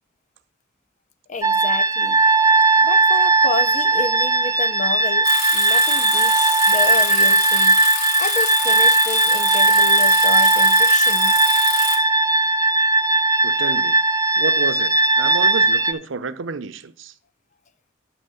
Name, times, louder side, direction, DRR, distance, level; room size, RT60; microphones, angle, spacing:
voice 1, 1.3-2.2 2.8-7.8 8.2-11.4, left 4 dB, 35° left, 0.5 m, -30 dB
sound 1, 1.4-15.9, right 3 dB, 15° right, 0.4 m, -17 dB
Bicycle, 5.2-12.0, left 5 dB, 85° left, 2.0 m, -27 dB
voice 2, 13.4-14.0 14.4-17.1, right 4 dB, 75° right, 0.6 m, -30 dB
9.8 x 3.6 x 6.8 m
head